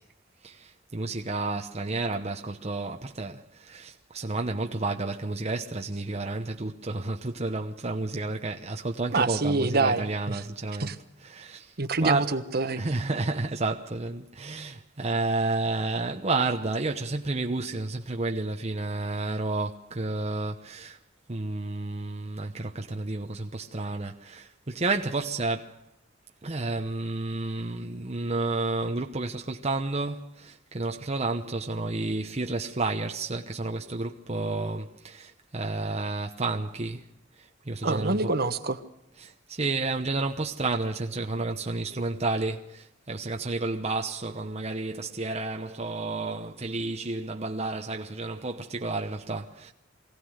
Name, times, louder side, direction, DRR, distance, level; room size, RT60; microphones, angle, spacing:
voice 1, 0.4-10.9 11.2-11.7 12.0-12.4 12.8-21.0 21.3-25.8 26.4-37.1 37.4-38.2 39.2-49.7, right 3 dB, 35° right, 1.0 m, -31 dB
voice 2, 9.1-10.4 10.8-11.0 11.8-12.8 37.8-38.8, right 3 dB, 55° right, 1.3 m, -26 dB
24.0 x 17.0 x 6.5 m
head